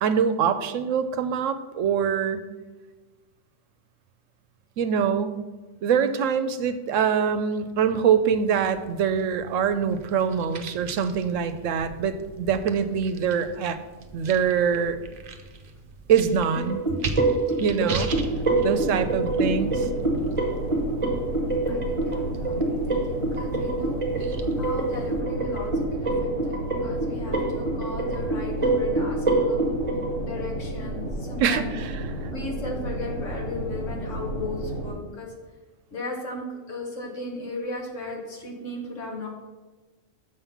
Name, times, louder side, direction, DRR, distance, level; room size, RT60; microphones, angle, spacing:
voice 1, 0.0-2.4 4.8-5.4 5.8-13.8 14.1-15.0 16.1-16.9 17.6-18.1 18.6-19.9 31.4-32.1, right 7 dB, 75° right, 11 dB, 1.0 m, -24 dB
sound 1, 8.3-25.2, right 3 dB, 50° right, 0.8 m, -39 dB
sound 2, 16.5-30.2, right 2 dB, 25° right, 1.2 m, -26 dB
sound 3, 18.1-34.9, right 1 dB, 90° left, 3.5 m, -33 dB
voice 2, 21.7-24.0 24.6-29.6 30.2-31.8 32.3-35.3 35.9-39.3, left 2 dB, 70° left, 0 dB, 1.9 m, -36 dB
6.9 x 5.6 x 5.8 m, 1.3 s
omnidirectional pair, 1.4 m